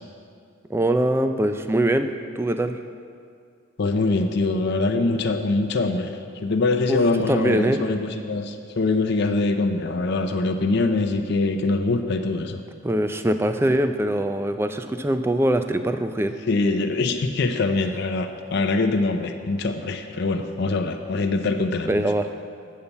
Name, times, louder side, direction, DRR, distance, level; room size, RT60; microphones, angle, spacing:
voice 1, 0.7-2.1 2.4-2.8 6.9-7.0 7.3-7.8 12.8-16.4 21.9-22.3, right 1 dB, 10° right, 8 dB, 0.3 m, -22 dB
voice 2, 3.8-12.6 16.5-22.0, left 3 dB, 50° left, 5 dB, 0.5 m, -23 dB
8.7 x 5.5 x 8.0 m, 2.3 s
head